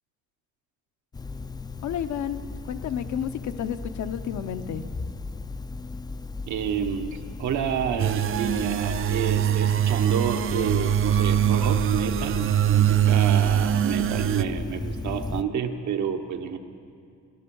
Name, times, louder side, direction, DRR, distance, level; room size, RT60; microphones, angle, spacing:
sound 1, 1.1-15.4, left 3 dB, 15° left, 0.3 m, -36 dB
voice 1, 1.8-4.9, left 9 dB, 70° left, 10 dB, 0.8 m, -31 dB
voice 2, 6.5-16.6, right 7 dB, 75° right, 6 dB, 1.1 m, -29 dB
sound 2, 8.0-14.4, right 11 dB, 45° right, 0.5 m, -23 dB
16.5 x 10.5 x 7.0 m, 2.3 s
cardioid pair, 90°, 30 cm